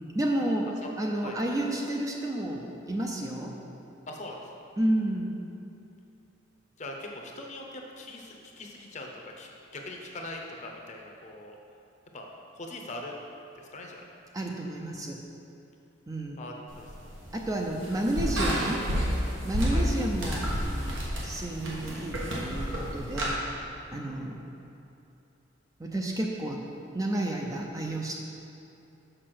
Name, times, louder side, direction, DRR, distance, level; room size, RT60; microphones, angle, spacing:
voice 1, 0.1-3.6 4.8-5.3 14.3-15.2 16.1-16.4 17.3-18.8 19.4-23.4 23.9-24.4 25.8-26.6 26.9-28.2, right 1 dB, 20° right, 0 dB, 0.5 m, -31 dB
voice 2, 4.1-4.7 6.8-9.1 9.4-11.6 12.1-12.3 12.5-13.2 13.5-14.0 16.4-16.9 19.7-19.9, left 1 dB, 35° left, 1 dB, 0.8 m, -41 dB
sound 1, 16.7-23.3, equal, 85° right, 1.6 m, -31 dB
6.6 x 5.5 x 5.8 m, 2.7 s
head